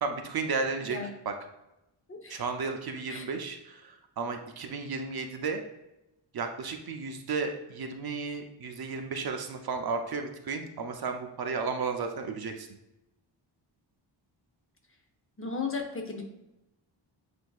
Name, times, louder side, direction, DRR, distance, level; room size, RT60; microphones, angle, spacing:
voice 1, 0.0-1.0 1.3-1.4 2.3-5.6 6.3-12.7, right 4 dB, 50° right, 5 dB, 0.5 m, -33 dB
voice 2, 2.1-2.4 3.1-3.3 15.4-16.2, left 4 dB, 30° left, 2 dB, 0.6 m, -35 dB
7.9 x 2.6 x 2.3 m, 0.90 s
wide cardioid pair, 145°, 48 cm